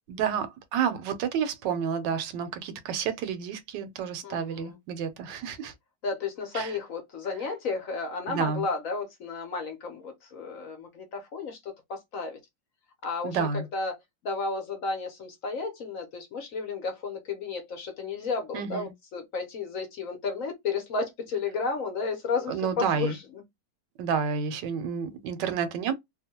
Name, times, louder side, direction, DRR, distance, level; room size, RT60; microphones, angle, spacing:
voice 1, 0.1-5.7 6.5-6.7 8.3-8.7 13.2-13.6 18.5-18.9 22.5-23.1 24.0-25.9, right 7 dB, 85° right, 1.3 m, -30 dB
voice 2, 4.2-4.8 6.0-12.4 13.0-14.0 14.2-23.4, left 4 dB, 60° left, 1.0 m, -33 dB
3.0 x 2.1 x 2.8 m
omnidirectional pair, 1.9 m